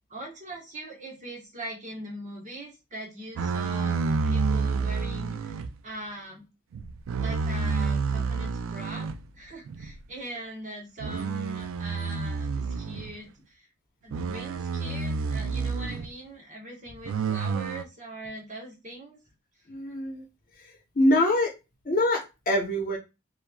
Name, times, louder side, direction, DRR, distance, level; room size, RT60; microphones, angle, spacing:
voice 1, 0.1-5.6 5.8-6.5 7.2-9.1 9.4-13.7 14.0-19.2, right 1 dB, 35° right, 0 dB, 1.1 m, -41 dB
sound 1, 3.4-5.7 6.7-9.2 9.7-9.9 11.0-13.1 14.1-16.1 17.0-17.8, right 4 dB, 70° right, 0.3 m, -29 dB
voice 2, 19.7-20.2 20.6-21.5 21.8-23.0, left 1 dB, 45° left, 1 dB, 0.9 m, -25 dB
3.0 x 2.2 x 2.2 m, 0.26 s
head